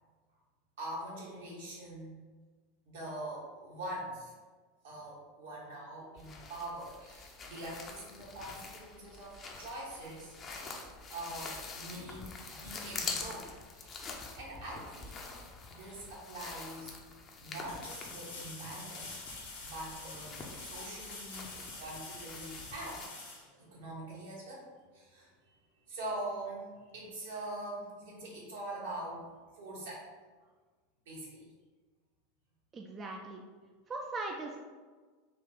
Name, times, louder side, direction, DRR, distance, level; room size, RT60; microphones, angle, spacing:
voice 1, 0.8-2.2 2.8-4.3 4.8-10.3 11.1-13.5 13.7-15.3 15.7-17.0 17.4-19.2 19.6-23.0 23.6-24.7 24.9-25.3 25.8-26.7 26.9-30.1 31.0-31.5, right 1 dB, 70° right, -5 dB, 1.4 m, -43 dB
sound 1, 6.2-23.1, left 4 dB, 35° left, 0.6 m, -46 dB
sound 2, 17.6-24.2 27.1-27.2, left 3 dB, 70° left, 1.3 m, -47 dB
voice 2, 32.7-33.4 33.9-34.6, right 2 dB, 30° right, 1 dB, 0.4 m, -39 dB
3.8 x 2.4 x 3.5 m, 1.4 s
hypercardioid pair, 85°, 0 cm